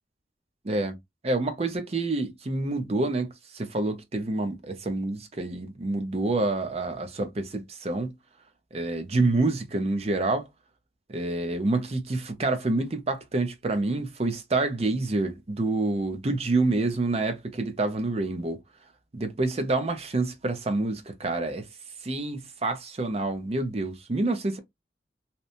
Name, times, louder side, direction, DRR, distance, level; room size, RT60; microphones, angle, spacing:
voice 1, 0.6-1.0 1.2-8.1 8.7-10.5 11.1-18.6 19.1-21.7 22.0-24.6, right 2 dB, 35° right, 0.6 m, -27 dB
2.9 x 2.2 x 2.5 m
head